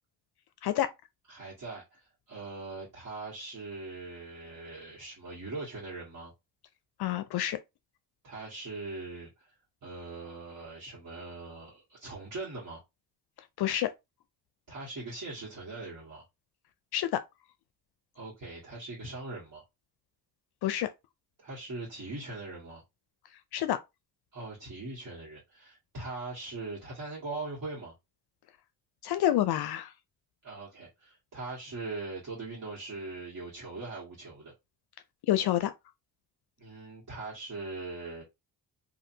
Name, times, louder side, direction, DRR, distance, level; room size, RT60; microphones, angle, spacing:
voice 1, 1.3-6.3 8.2-9.5 9.8-12.8 14.7-16.2 18.1-19.6 21.4-22.8 24.3-27.9 30.4-34.5 36.6-38.2, right 3 dB, 50° right, 1.5 m, -41 dB
voice 2, 7.0-7.6 13.6-13.9 16.9-17.2 20.6-20.9 23.5-23.8 29.0-29.9 35.3-35.7, left 12 dB, 65° left, 0.5 m, -27 dB
2.7 x 2.6 x 2.6 m
cardioid pair, 75°, 42 cm